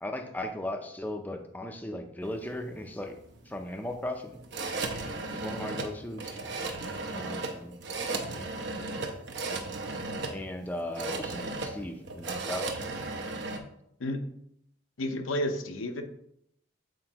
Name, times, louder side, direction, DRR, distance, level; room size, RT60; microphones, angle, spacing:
voice 1, 0.0-3.2 3.5-4.4 5.3-6.4 7.1-7.8 10.3-12.7, left 1 dB, 10° left, 5 dB, 0.5 m, -37 dB
sound 1, 2.2-13.6, right 3 dB, 55° right, 0.8 m, -36 dB
voice 2, 15.0-16.0, left 1 dB, 80° left, 6 dB, 0.8 m, -31 dB
7.7 x 4.5 x 2.9 m, 0.73 s
head